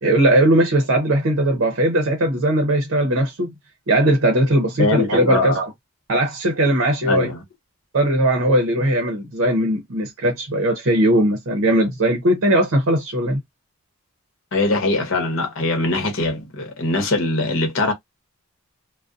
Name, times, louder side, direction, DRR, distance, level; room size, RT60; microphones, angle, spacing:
voice 1, 0.0-3.5 3.9-5.7 6.1-7.3 7.9-13.4, right 1 dB, 65° right, 0.6 m, -19 dB
voice 2, 4.8-5.6 7.0-7.4 14.5-17.9, left 2 dB, 60° left, 0.9 m, -22 dB
2.5 x 2.1 x 2.4 m
head